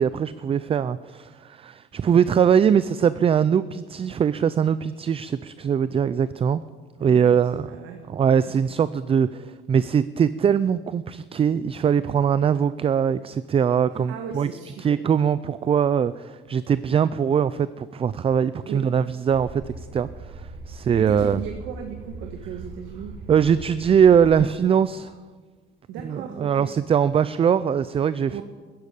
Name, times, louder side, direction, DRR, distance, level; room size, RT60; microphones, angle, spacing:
voice 1, 0.0-6.6 7.0-7.7 8.1-14.5 14.8-21.4 23.3-25.1 26.1-28.4, right 7 dB, 30° right, 15 dB, 0.4 m, -21 dB
voice 2, 7.0-8.5 13.9-15.0 18.6-18.9 20.8-23.2 25.9-26.7 28.3-28.4, right 7 dB, 85° right, 4 dB, 1.4 m, -37 dB
sound 1, 19.3-24.3, right 3 dB, 60° right, 3.3 m, -40 dB
14.0 x 10.5 x 8.3 m, 1.5 s
cardioid pair, 100°, 20 cm